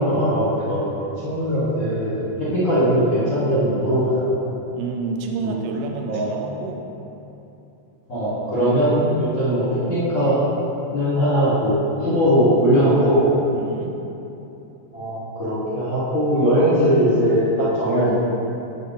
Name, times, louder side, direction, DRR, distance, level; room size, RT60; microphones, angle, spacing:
voice 1, 0.0-4.3 5.4-5.5 6.1-6.3 8.1-10.4 10.9-13.3 14.9-18.1, equal, 65° left, -11 dB, 0.7 m, -20 dB
voice 2, 4.7-6.9 8.6-8.9 13.5-14.0, right 4 dB, 85° right, 2 dB, 1.5 m, -29 dB
10.0 x 3.9 x 3.9 m, 2.9 s
omnidirectional pair, 3.6 m